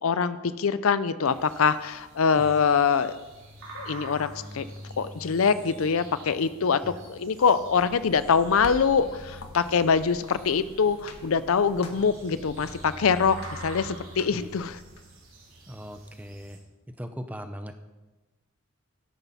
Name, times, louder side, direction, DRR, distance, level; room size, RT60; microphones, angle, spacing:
voice 1, 0.0-3.2 3.7-4.7 5.0-14.8, left 6 dB, 70° left, 14 dB, 0.5 m, -24 dB
sound 1, 1.2-16.6, right 1 dB, 60° right, 3.3 m, -46 dB
sound 2, 7.6-15.0, left 2 dB, 85° left, 1.4 m, -46 dB
voice 2, 15.7-16.6 17.0-17.8, equal, 5° right, 8 dB, 0.6 m, -39 dB
12.5 x 11.0 x 4.2 m, 1.2 s
head